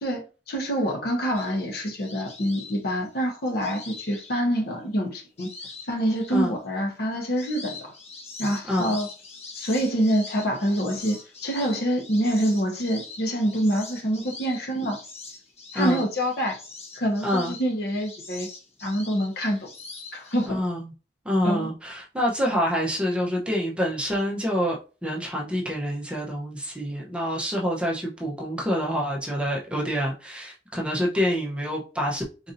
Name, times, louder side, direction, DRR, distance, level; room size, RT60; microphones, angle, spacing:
voice 1, 0.0-5.5 5.9-7.9 8.4-9.1 9.5-15.0 15.7-16.6 16.9-18.5 18.8-19.7 20.1-20.6 21.4-21.7, equal, 60° left, 0.9 m, -26 dB
sound 1, 1.3-4.8 5.4-6.5 6.9-20.5, left 3 dB, 35° left, 1.0 m, -43 dB
voice 2, 17.2-17.5 20.5-20.9 21.2-32.5, equal, 5° right, 0.7 m, -27 dB
4.0 x 2.6 x 2.6 m
head